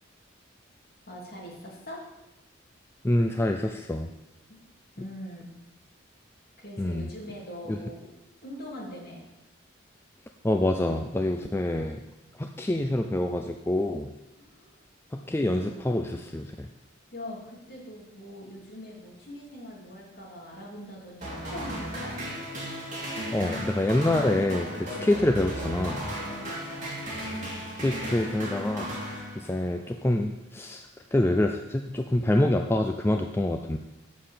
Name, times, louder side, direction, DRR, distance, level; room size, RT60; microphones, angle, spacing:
voice 1, 1.1-2.0 4.5-4.6 5.0-5.5 6.6-8.1 8.4-9.2 14.4-14.8 15.2-15.3 17.1-22.2 24.9-25.3 26.2-27.0, equal, 50° left, -4 dB, 3.1 m, -42 dB
voice 2, 3.0-4.1 6.8-7.1 7.7-7.8 10.4-12.0 12.4-14.1 15.1-16.7 23.3-26.1 27.8-29.0 29.4-33.8, left 1 dB, 10° left, 4 dB, 0.4 m, -26 dB
sound 1, 21.2-29.8, equal, 40° right, 2.9 m, -35 dB
7.7 x 7.3 x 6.6 m, 0.98 s
head